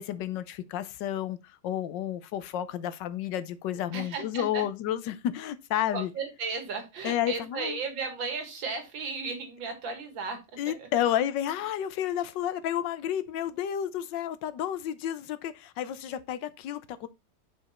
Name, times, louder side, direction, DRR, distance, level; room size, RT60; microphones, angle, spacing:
voice 1, 0.0-6.1 7.0-7.8 10.6-17.1, left 11 dB, 75° left, 1.3 m, -31 dB
voice 2, 3.9-4.7 5.9-11.1, right 4 dB, 75° right, 2.4 m, -35 dB
6.0 x 5.2 x 4.2 m
omnidirectional pair, 2.1 m